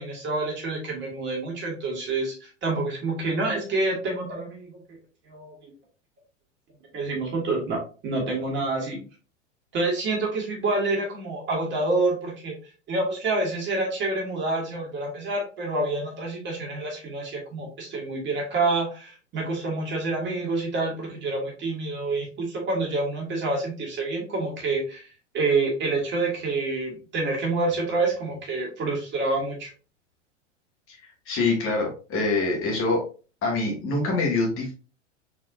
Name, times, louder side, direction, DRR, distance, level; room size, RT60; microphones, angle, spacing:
voice 1, 0.0-5.0 5.3-5.7 6.9-9.0 9.7-12.6 12.9-25.1 25.3-29.7, right 3 dB, 30° right, -1 dB, 1.9 m, -27 dB
voice 2, 31.3-33.1 33.4-34.7, left 3 dB, 35° left, 0 dB, 1.8 m, -25 dB
4.3 x 4.0 x 2.5 m, 0.35 s
hypercardioid pair, 110°, 37 cm